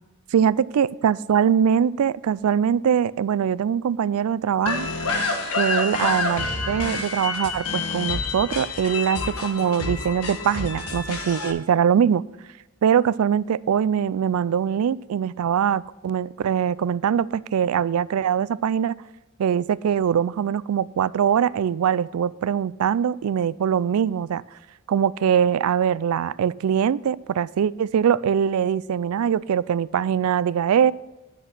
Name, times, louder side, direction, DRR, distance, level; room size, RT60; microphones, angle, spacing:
voice 1, 0.3-4.9 5.5-12.2 12.8-18.9 19.4-24.4 24.9-30.9, right 8 dB, 85° right, 20 dB, 0.3 m, -22 dB
sound 1, 4.7-11.5, left 3 dB, 85° left, 1.4 m, -28 dB
10.0 x 6.4 x 5.9 m, 1.1 s
head